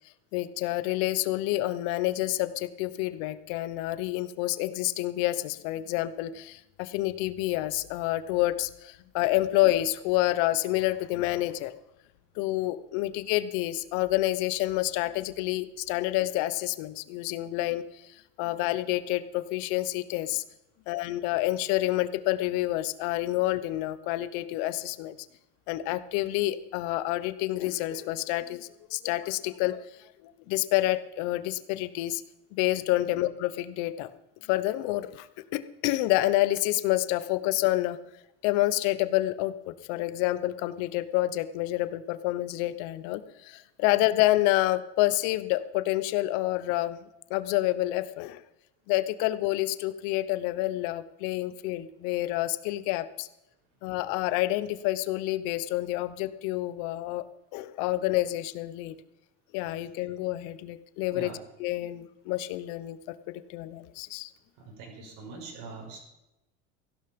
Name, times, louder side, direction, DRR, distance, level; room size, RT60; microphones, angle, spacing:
voice 1, 0.3-11.7 12.4-20.4 20.9-25.2 25.7-32.2 32.5-34.1 34.4-35.3 35.5-38.0 38.4-47.0 47.3-48.4 48.9-53.3 53.8-57.3 57.5-59.0 59.5-61.3 61.6-64.3, left 16 dB, 70° left, 14 dB, 1.0 m, -28 dB
voice 2, 64.6-66.0, right 4 dB, 65° right, 1 dB, 6.0 m, -42 dB
16.0 x 11.5 x 5.3 m, 0.90 s
cardioid pair, 140°, 31 cm